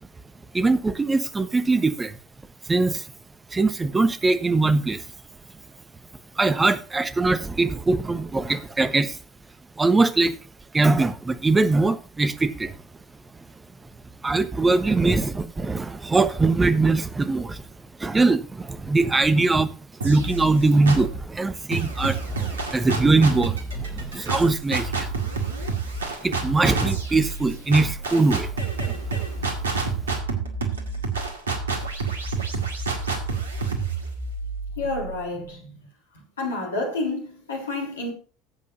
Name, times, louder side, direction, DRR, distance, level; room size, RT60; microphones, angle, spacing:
voice 1, 0.5-2.1 2.7-3.0 3.5-5.0 6.4-9.2 9.8-10.3 10.7-12.7 14.2-17.6 18.0-19.7 20.0-25.1 26.2-28.5 28.8-29.0, right 3 dB, 15° right, 1.2 m, -21 dB
sound 1, 20.0-21.2 21.7-35.4, right 4 dB, 75° right, 2.1 m, -29 dB
voice 2, 34.8-35.7 36.4-38.1, left 2 dB, 75° left, 3.7 m, -29 dB
17.0 x 8.4 x 2.7 m
figure-of-eight pair, 70°, 0 cm